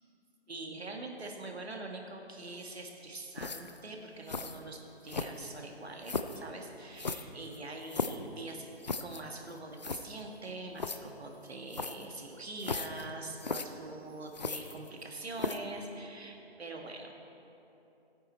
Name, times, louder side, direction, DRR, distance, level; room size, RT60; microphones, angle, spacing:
voice 1, 0.5-8.7 9.0-17.2, right 2 dB, 75° right, 2 dB, 1.7 m, -44 dB
sound 1, 3.4-3.8 4.3-4.6 5.1-5.6 6.0-6.4 7.0-8.3 8.8-9.2 9.5-9.6 9.8-10.0 10.8-11.0 11.7-12.1 12.6-13.0 13.4-13.7 14.3-15.0 15.4-15.7, left 4 dB, 45° left, 0.5 m, -36 dB
14.0 x 9.0 x 4.3 m, 3.0 s
figure-of-eight pair, 160°, 32 cm